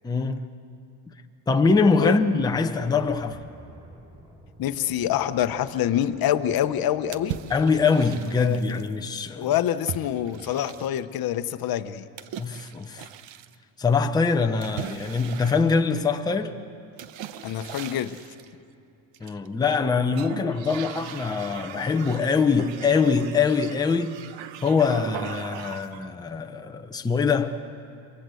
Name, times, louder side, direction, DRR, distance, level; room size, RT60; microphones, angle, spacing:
voice 1, 0.0-0.4 1.5-3.4 7.5-9.5 12.4-13.0 13.8-16.6 19.2-24.2 24.6-27.6, left 4 dB, 10° left, 0.7 m, -23 dB
sound 1, 1.8-9.2, equal, 10° right, 4.2 m, -50 dB
voice 2, 4.6-7.4 8.4-8.8 9.4-12.1 17.4-18.2, left 11 dB, 45° left, 1.0 m, -26 dB
sound 2, 7.1-8.9 9.9-11.2 12.2-13.5 14.6-16.3 17.0-18.5 19.1-19.8 20.1-26.1, right 10 dB, 60° right, 0.9 m, -39 dB
27.5 x 23.5 x 7.8 m
cardioid pair, 155°, 49 cm